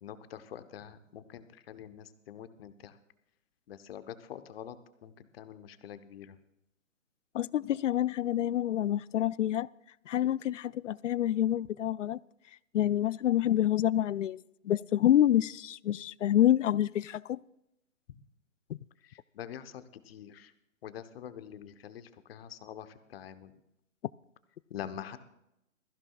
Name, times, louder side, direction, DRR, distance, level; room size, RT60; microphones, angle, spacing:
voice 1, 0.0-3.0 3.7-4.8 5.0-6.4 19.0-20.5 20.8-23.5 24.7-25.2, left 9 dB, 45° left, 1.1 m, -45 dB
voice 2, 7.3-9.7 10.1-12.2 12.7-17.4 18.7-18.8, left 12 dB, 65° left, 0.5 m, -27 dB
21.0 x 15.0 x 2.4 m
hypercardioid pair, 135°, 41 cm